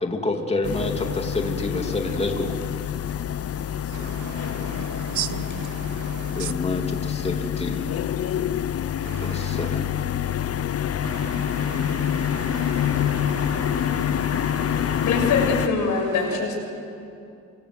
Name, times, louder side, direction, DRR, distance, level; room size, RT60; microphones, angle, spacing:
voice 1, 0.0-2.5 6.4-7.8 9.1-9.8, left 2 dB, 20° left, 3.0 m, -28 dB
sound 1, 0.6-15.7, left 10 dB, 50° left, 1.0 m, -26 dB
voice 2, 3.9-6.5 9.0-9.7 11.0-15.2, right 11 dB, 80° right, 1.2 m, -37 dB
voice 3, 15.0-16.5, left 4 dB, 80° left, 7.0 m, -23 dB
28.0 x 25.0 x 8.1 m
cardioid pair, 90°, 30 cm